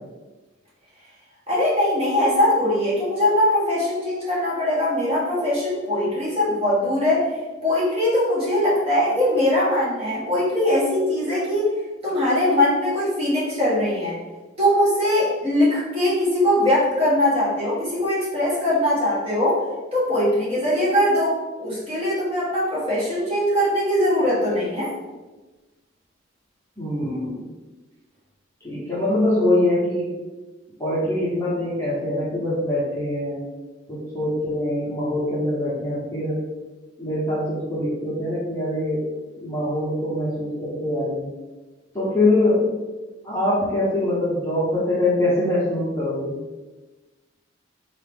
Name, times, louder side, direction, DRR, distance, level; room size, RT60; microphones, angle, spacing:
voice 1, 1.5-7.3 7.6-11.7 12.0-14.2 14.6-19.6 19.9-24.9, left 1 dB, 30° right, -8 dB, 1.4 m, -21 dB
voice 2, 26.8-27.4 28.6-30.1 30.8-33.4 33.9-36.4 37.0-39.0 39.4-41.3 41.9-42.6 43.2-46.4, left 1 dB, 15° left, -9 dB, 1.0 m, -23 dB
3.7 x 2.9 x 3.5 m, 1.2 s
head